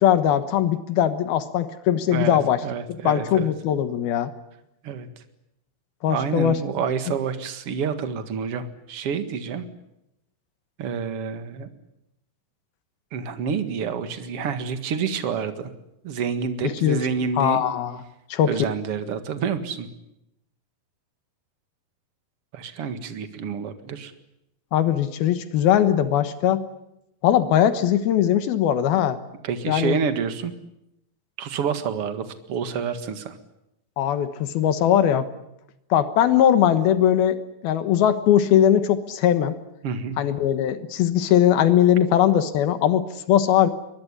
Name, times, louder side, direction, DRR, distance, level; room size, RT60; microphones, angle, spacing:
voice 1, 0.0-2.6 2.9-4.3 6.0-6.6 16.6-17.1 17.4-18.0 18.3-18.6 24.7-26.6 27.2-29.2 29.7-30.0 34.0-35.3 35.9-39.5 40.2-43.7, left 10 dB, 75° left, 11 dB, 3.1 m, -20 dB
voice 2, 2.1-3.5 4.8-5.1 6.1-9.7 10.8-11.7 13.1-15.7 16.0-17.6 18.5-19.9 22.5-24.1 29.4-30.5 31.4-33.4 39.8-40.2, right 6 dB, 45° right, 9 dB, 2.2 m, -28 dB
23.0 x 21.0 x 10.0 m, 0.84 s
omnidirectional pair, 4.5 m